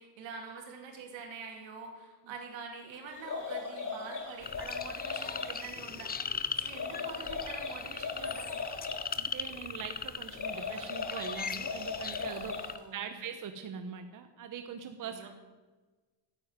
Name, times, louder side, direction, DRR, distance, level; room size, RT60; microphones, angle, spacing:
voice 1, 0.0-6.1 6.6-8.6 12.6-13.2 15.0-15.3, right 5 dB, 85° right, 2 dB, 3.3 m, -45 dB
sound 1, 3.1-5.6 6.6-9.1 10.2-12.8, left 5 dB, 45° left, 4.6 m, -39 dB
sound 2, 4.4-12.8, left 6 dB, 20° left, 0.6 m, -39 dB
voice 2, 9.1-15.3, right 7 dB, 45° right, 7 dB, 1.0 m, -42 dB
9.9 x 9.0 x 9.5 m, 1.3 s
cardioid pair, 125°, 45 cm